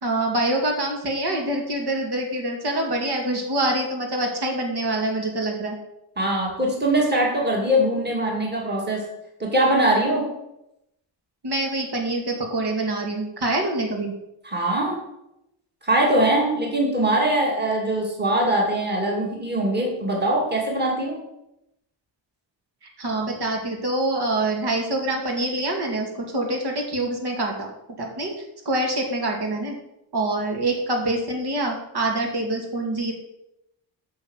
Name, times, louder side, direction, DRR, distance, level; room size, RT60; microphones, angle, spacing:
voice 1, 0.0-5.8 11.4-14.1 23.0-27.7 28.0-28.3 28.7-29.8 30.1-33.1, right 1 dB, 55° right, 1 dB, 2.4 m, -25 dB
voice 2, 6.2-9.1 9.4-10.3 14.4-15.0 15.8-21.2, right 1 dB, 20° right, -1 dB, 2.5 m, -22 dB
8.6 x 6.7 x 7.9 m, 0.86 s
wide cardioid pair, 180°, 46 cm